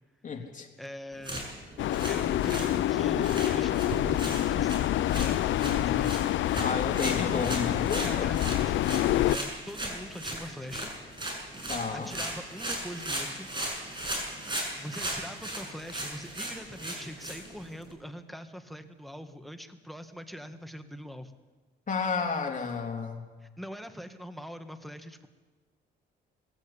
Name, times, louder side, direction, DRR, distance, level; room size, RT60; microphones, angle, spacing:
voice 1, 0.2-0.7 6.6-8.3 11.7-12.1 21.9-23.3, left 5 dB, 40° left, 2 dB, 3.4 m, -31 dB
voice 2, 0.8-1.5 2.1-6.4 8.0-10.9 11.9-13.5 14.4-21.4 23.4-25.3, equal, ahead, 9 dB, 1.6 m, -42 dB
sound 1, 1.1-17.9, right 1 dB, 25° right, 6.9 m, -37 dB
sound 2, 1.1-6.6 6.9-8.5, right 2 dB, 80° right, 3.3 m, -52 dB
sound 3, 1.8-9.4, left 13 dB, 75° left, 0.5 m, -27 dB
21.0 x 16.0 x 8.8 m, 1.4 s
cardioid pair, 90°, 20 cm